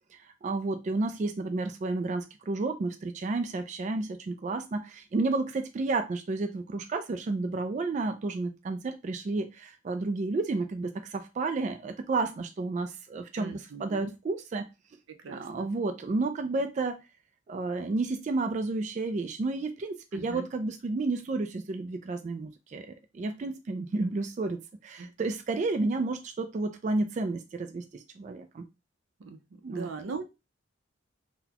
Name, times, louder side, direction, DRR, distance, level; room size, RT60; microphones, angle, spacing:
voice 1, 0.1-14.7 15.3-17.0 17.5-28.6 29.6-29.9, right 3 dB, 40° right, 0.3 m, -31 dB
voice 2, 13.4-14.1 15.2-15.7 20.1-20.4 25.0-25.1 29.2-29.4 29.7-30.2, right 4 dB, 90° right, 0.5 m, -39 dB
3.9 x 2.2 x 2.8 m
head